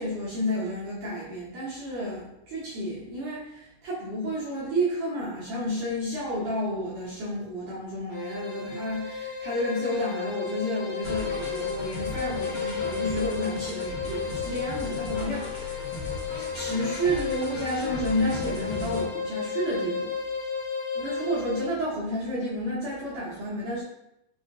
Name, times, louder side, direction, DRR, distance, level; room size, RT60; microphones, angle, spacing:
voice 1, 0.0-15.9 16.4-20.1 21.0-23.8, equal, 75° right, -9 dB, 1.9 m, -31 dB
sound 1, 8.1-21.8, left 6 dB, 70° left, 1.4 m, -33 dB
sound 2, 11.0-19.1, left 2 dB, 85° left, 1.3 m, -37 dB
5.9 x 2.1 x 2.5 m, 0.86 s
omnidirectional pair, 4.4 m